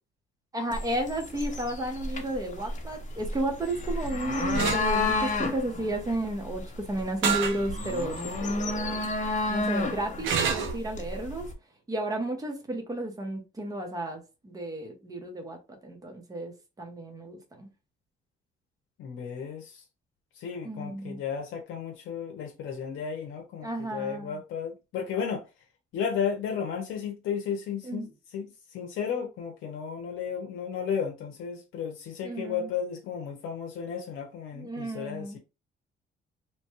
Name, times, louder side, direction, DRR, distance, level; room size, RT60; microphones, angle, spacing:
voice 1, 0.5-9.1 9.5-11.5 11.9-17.7 20.6-21.2 23.6-24.4 27.8-28.1 32.2-32.7 34.5-35.4, right 1 dB, 20° right, 0.9 m, -33 dB
sound 1, 0.7-11.5, left 2 dB, 40° left, 0.8 m, -31 dB
sound 2, 4.5-4.8 7.2-7.6 8.2-8.3 10.2-10.8, right 7 dB, 75° right, 0.6 m, -26 dB
voice 2, 19.0-19.8 20.4-25.4 25.9-35.4, left 7 dB, 85° left, 0.6 m, -34 dB
3.0 x 2.2 x 2.9 m
cardioid pair, 90°, 20 cm